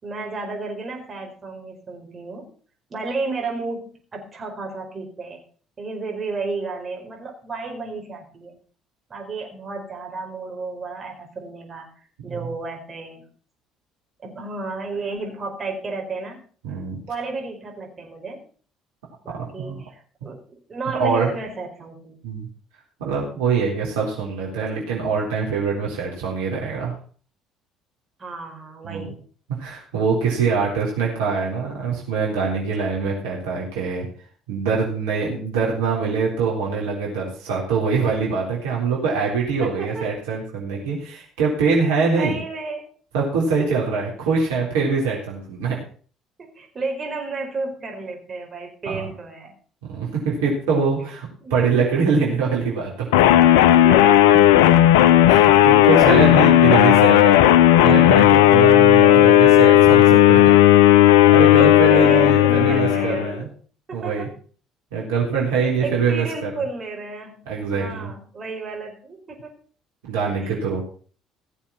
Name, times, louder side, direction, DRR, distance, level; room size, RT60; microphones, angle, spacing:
voice 1, 0.0-2.5 2.9-5.4 5.8-8.6 9.1-13.2 14.2-16.4 17.1-18.4 19.2-22.2 28.2-29.2 39.6-40.1 42.1-42.8 43.6-43.7 44.3-44.4 46.4-49.5 51.4-51.6 53.8-54.4 55.9-56.2 59.0-59.5 61.5-63.5 63.9-64.3 65.6-67.4 67.7-69.5 70.4-70.5, right 3 dB, 35° right, 1 dB, 4.9 m, -32 dB
voice 2, 16.6-17.0 19.6-19.8 21.0-21.3 22.2-22.5 23.0-26.9 28.8-29.1 29.6-34.1 34.5-42.4 43.1-45.8 48.9-49.1 49.8-53.1 55.3-57.4 57.8-60.6 61.0-63.5 63.9-64.3 64.9-66.5 67.5-68.1 70.0-70.8, right 5 dB, 75° right, -3 dB, 4.0 m, -23 dB
sound 1, 53.1-63.4, left 12 dB, 70° left, 0.6 m, -13 dB
17.0 x 7.2 x 6.0 m, 0.43 s
figure-of-eight pair, 55°, 0 cm